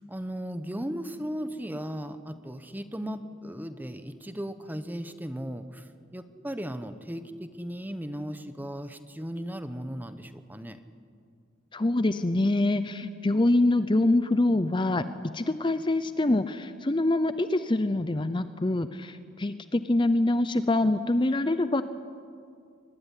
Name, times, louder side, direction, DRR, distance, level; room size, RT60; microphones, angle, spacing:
voice 1, 0.1-10.8, equal, 10° right, 10 dB, 0.9 m, -36 dB
voice 2, 11.7-15.0 15.3-21.8, left 2 dB, 25° left, 12 dB, 0.6 m, -25 dB
23.5 x 19.5 x 9.9 m, 2.3 s
head